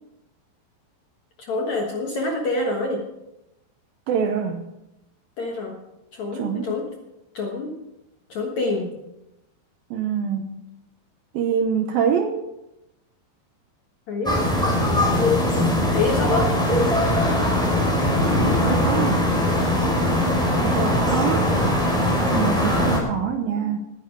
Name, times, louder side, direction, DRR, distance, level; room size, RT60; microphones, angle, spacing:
voice 1, 1.4-3.0 5.4-5.8 6.1-6.9 7.3-7.7 8.3-8.9 14.1-14.5 15.9-16.5, left 2 dB, 60° left, 0 dB, 2.0 m, -26 dB
voice 2, 4.1-4.7 6.3-6.7 9.9-10.5 11.3-12.5 18.6-19.3 20.6-21.5 22.3-23.8, right 7 dB, 75° right, 5 dB, 2.3 m, -25 dB
sound 1, 14.2-23.0, left 1 dB, ahead, 3.6 m, -20 dB
19.0 x 10.0 x 4.7 m, 0.91 s
omnidirectional pair, 5.1 m